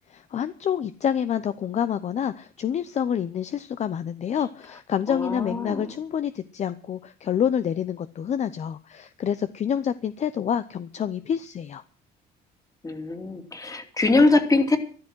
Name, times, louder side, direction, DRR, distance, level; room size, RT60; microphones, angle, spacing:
voice 1, 0.1-11.8, left 8 dB, 40° left, 13 dB, 0.8 m, -27 dB
voice 2, 5.1-5.9 12.8-14.8, left 2 dB, 20° left, 7 dB, 2.8 m, -22 dB
13.5 x 12.5 x 6.3 m, 0.40 s
cardioid pair, 110°, 17 cm